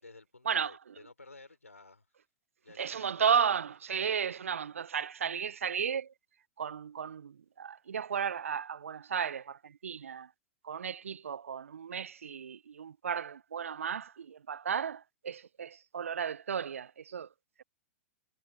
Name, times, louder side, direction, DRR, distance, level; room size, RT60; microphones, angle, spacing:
voice 1, 0.0-2.1 2.6-3.4, left 3 dB, 90° left, 4.1 m, -53 dB
voice 2, 2.7-6.1 6.6-10.3 10.6-17.3, right 7 dB, 75° right, 0.6 m, -34 dB
figure-of-eight pair, 105°, 7 cm